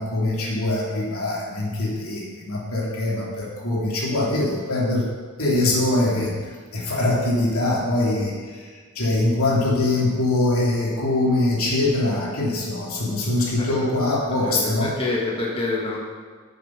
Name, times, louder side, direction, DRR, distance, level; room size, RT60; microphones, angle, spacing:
voice 1, 0.0-5.0 5.4-6.3 6.7-8.7 8.9-14.9, left 2 dB, 90° left, -4 dB, 2.6 m, -23 dB
voice 2, 14.3-16.0, left 2 dB, 25° left, -3 dB, 1.5 m, -27 dB
8.7 x 6.9 x 5.9 m, 1.5 s
head